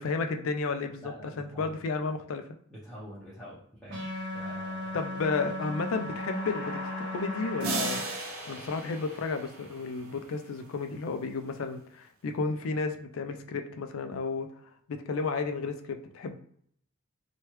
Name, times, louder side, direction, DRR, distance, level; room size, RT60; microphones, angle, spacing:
voice 1, 0.0-2.4 4.9-8.0 8.5-14.5 14.9-16.4, left 4 dB, 70° left, 7 dB, 0.4 m, -32 dB
voice 2, 1.0-1.8 2.7-4.1 4.3-5.0, equal, ahead, -10 dB, 0.7 m, -46 dB
sound 1, 3.9-8.0, left 1 dB, 55° right, 0.9 m, -36 dB
sound 2, 5.9-9.7, left 3 dB, 45° left, 0.8 m, -45 dB
sound 3, 7.6-10.1, right 3 dB, 80° right, 0.7 m, -36 dB
3.1 x 2.2 x 3.0 m, 0.65 s
head